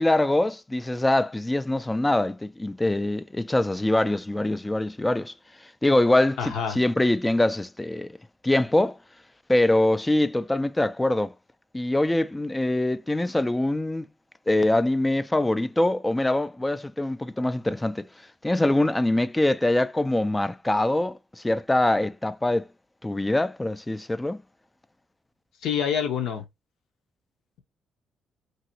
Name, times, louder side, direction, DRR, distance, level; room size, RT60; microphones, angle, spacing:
voice 1, 0.0-5.3 5.8-8.1 8.4-9.0 9.5-11.3 11.7-14.1 14.5-18.1 18.4-22.7 23.0-24.4, left 1 dB, 15° left, 0.3 m, -23 dB
voice 2, 6.4-6.8 25.6-26.4, left 8 dB, 80° left, 0.8 m, -26 dB
2.9 x 2.8 x 2.8 m
cardioid pair, 90°, 0 cm